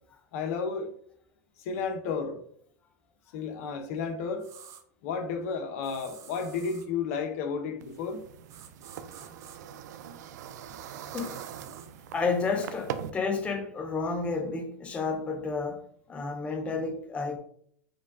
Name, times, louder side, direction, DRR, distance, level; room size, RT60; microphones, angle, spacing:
voice 1, 0.3-0.9 1.6-2.4 3.3-4.4 5.0-8.2, left 5 dB, 60° left, 0.8 m, -32 dB
sound 1, 4.4-4.8 5.8-6.9 8.5-9.6 11.2-11.9, right 8 dB, 35° right, 0.6 m, -50 dB
sound 2, 7.8-13.1, right 9 dB, 75° right, 0.4 m, -41 dB
voice 2, 11.0-11.4 12.1-17.4, left 4 dB, 15° left, 0.4 m, -31 dB
5.0 x 2.3 x 3.6 m
supercardioid pair, 135°, 9 cm